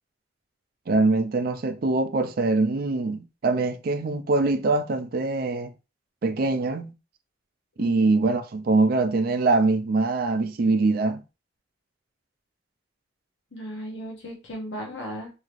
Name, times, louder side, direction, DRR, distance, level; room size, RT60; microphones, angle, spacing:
voice 1, 0.9-5.7 6.2-6.9 7.8-11.2, right 3 dB, 50° right, 0.4 m, -23 dB
voice 2, 13.5-15.3, equal, 70° left, 0.8 m, -36 dB
3.1 x 2.8 x 2.4 m
head